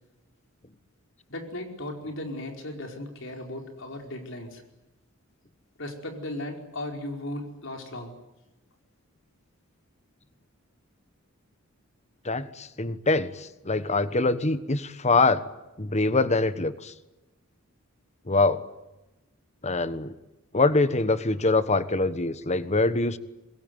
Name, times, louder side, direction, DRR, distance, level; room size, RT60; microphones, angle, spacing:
voice 1, 1.3-4.6 5.8-8.1, left 1 dB, 60° left, 3 dB, 4.9 m, -36 dB
voice 2, 12.2-15.4 15.8-16.9 18.3-18.7 19.6-20.1 20.5-23.2, left 3 dB, 30° left, 13 dB, 1.3 m, -24 dB
26.0 x 22.0 x 9.5 m, 0.98 s
head